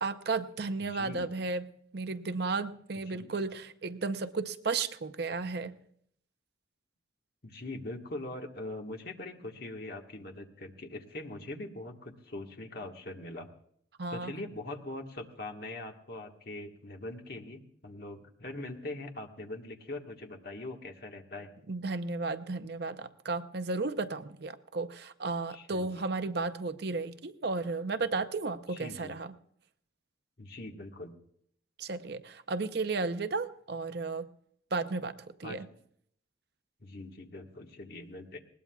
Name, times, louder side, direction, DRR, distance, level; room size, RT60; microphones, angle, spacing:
voice 1, 0.0-5.8 14.0-14.3 21.7-29.3 31.8-34.3 34.7-35.7, right 3 dB, 55° right, 10 dB, 0.6 m, -34 dB
voice 2, 0.9-1.3 3.1-3.3 7.4-13.5 14.1-21.5 25.5-26.1 28.7-29.1 30.4-31.2 35.4-35.6 36.8-38.4, left 2 dB, 50° left, 3 dB, 1.5 m, -42 dB
20.5 x 18.5 x 2.3 m, 0.66 s
head